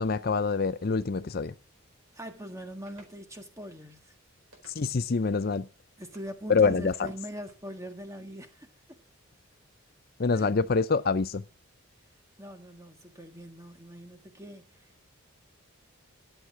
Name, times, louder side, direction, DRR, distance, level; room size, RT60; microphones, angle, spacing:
voice 1, 0.0-1.5 4.7-5.7 6.5-7.1 10.2-11.4, left 4 dB, 45° left, 0.5 m, -26 dB
voice 2, 2.1-4.1 6.0-8.7 10.3-10.5 12.4-15.1, equal, 15° right, 1.5 m, -42 dB
sound 1, 2.9-3.2 4.5-5.1 6.1-6.4 6.9-7.6, right 2 dB, 80° right, 4.6 m, -57 dB
13.0 x 7.9 x 5.9 m
head